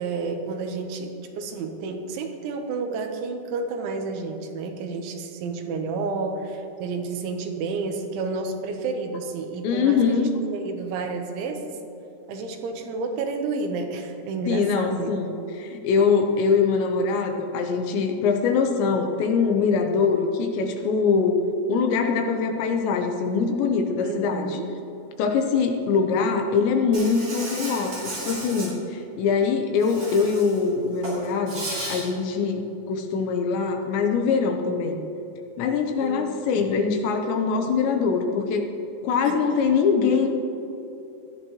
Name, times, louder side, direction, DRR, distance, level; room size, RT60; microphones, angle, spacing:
voice 1, 0.0-11.8 12.3-15.1 24.0-24.7 36.0-36.6 39.3-39.4, right 4 dB, 80° right, 4 dB, 3.4 m, -30 dB
voice 2, 9.6-10.3 14.5-21.4 21.7-24.6 25.2-31.6 31.9-32.6 32.9-35.0 35.6-38.7 39.0-40.3, left 5 dB, 75° left, 4 dB, 3.1 m, -23 dB
Insect, 26.9-28.7 29.8-30.6 30.9-32.0, right 1 dB, 30° right, 4.1 m, -34 dB
18.5 x 13.0 x 3.1 m, 2.9 s
omnidirectional pair, 5.4 m